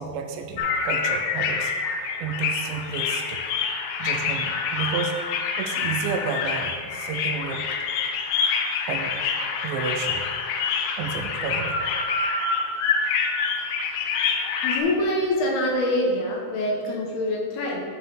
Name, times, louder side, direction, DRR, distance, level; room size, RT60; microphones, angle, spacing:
voice 1, 0.0-1.7 2.2-3.4 4.0-5.2 5.6-7.7 8.9-9.3 9.6-10.3 11.0-11.8, right 6 dB, 85° right, 5 dB, 2.9 m, -31 dB
sound 1, 0.6-14.8, left 5 dB, 90° left, 3.1 m, -26 dB
voice 2, 14.6-17.8, left 1 dB, 75° left, -1 dB, 2.6 m, -25 dB
11.5 x 4.7 x 3.8 m, 2.1 s
omnidirectional pair, 5.2 m